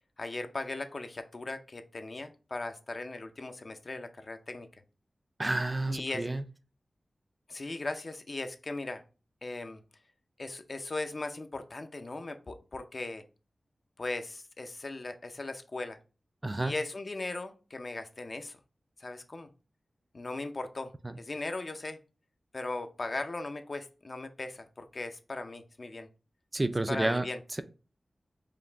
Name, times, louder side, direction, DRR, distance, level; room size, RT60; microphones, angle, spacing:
voice 1, 0.2-4.7 5.9-6.3 7.5-9.0 9.4-9.8 10.4-13.2 14.0-16.0 16.6-18.6 19.0-19.5 20.1-22.0 22.5-26.1 26.9-27.4, left 2 dB, 45° left, 0.5 m, -38 dB
voice 2, 5.4-6.4 16.4-16.7 26.5-27.3, right 2 dB, 25° right, 0.3 m, -30 dB
5.0 x 2.5 x 3.3 m
wide cardioid pair, 95°, 0 cm